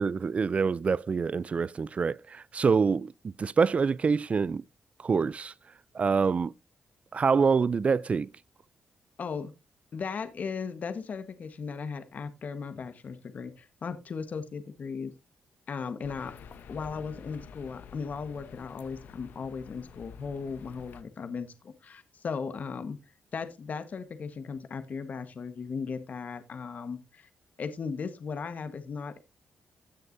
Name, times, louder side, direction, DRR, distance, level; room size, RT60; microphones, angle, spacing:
voice 1, 0.0-4.6 5.0-5.5 5.9-6.5 7.1-8.3, right 5 dB, 45° right, 0.4 m, -26 dB
voice 2, 9.2-9.5 9.9-15.1 15.7-16.3 16.7-23.0 23.3-27.3 27.6-29.2, left 5 dB, 55° left, 1.3 m, -37 dB
sound 1, 16.0-21.0, left 7 dB, 75° left, 0.9 m, -49 dB
16.0 x 6.6 x 2.6 m
cardioid pair, 60°, 3 cm